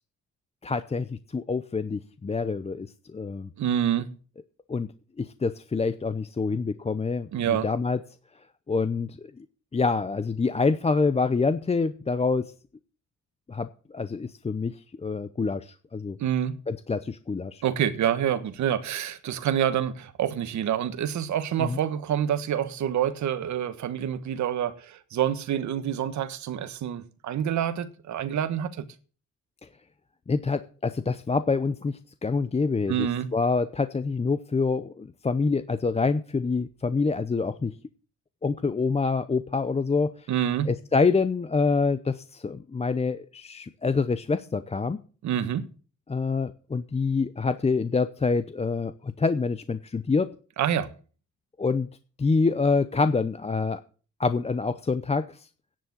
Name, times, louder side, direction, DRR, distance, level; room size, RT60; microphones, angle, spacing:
voice 1, 0.6-2.9 3.1-3.5 4.7-4.9 5.2-8.0 8.7-9.4 9.7-12.5 13.5-16.2 16.7-17.6 21.6-21.8 30.3-33.1 33.3-37.7 38.4-40.1 40.7-45.0 46.1-50.3 51.6-51.9 52.2-53.8 54.2-55.5, left 4 dB, 20° left, 0.7 m, -26 dB
voice 2, 3.6-4.1 7.3-7.7 16.2-16.6 17.6-28.8 32.9-33.3 40.3-40.7 45.2-45.7 50.6-50.9, right 10 dB, 70° right, 1.5 m, -27 dB
10.5 x 7.1 x 7.9 m
cardioid pair, 90°, 30 cm